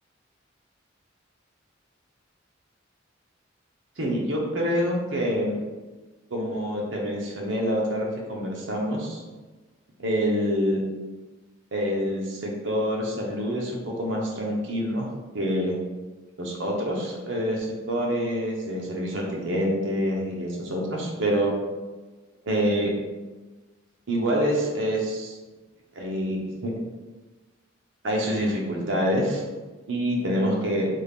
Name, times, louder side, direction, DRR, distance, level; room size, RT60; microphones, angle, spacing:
voice 1, 4.0-5.6 6.3-9.2 10.0-10.8 11.7-15.1 15.3-15.8 16.4-21.5 22.5-22.9 24.1-25.3 25.9-26.7 28.0-29.4 29.9-30.9, equal, 70° right, -1 dB, 0.8 m, -26 dB
3.5 x 2.4 x 3.4 m, 1.2 s
head